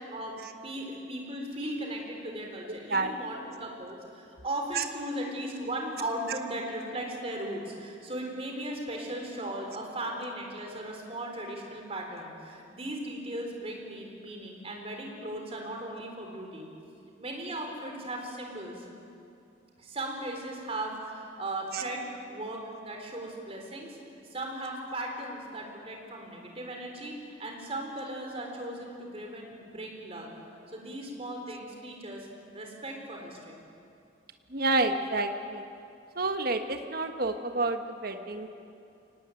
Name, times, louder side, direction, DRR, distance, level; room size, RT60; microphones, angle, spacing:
voice 1, 0.6-16.7 17.2-18.9 19.8-24.0 24.3-30.3 30.7-32.3 32.5-33.6, right 1 dB, 30° right, 2 dB, 4.0 m, -37 dB
voice 2, 34.5-35.6 36.2-38.5, right 2 dB, 50° right, 6 dB, 1.4 m, -29 dB
23.5 x 19.0 x 9.3 m, 2.6 s
head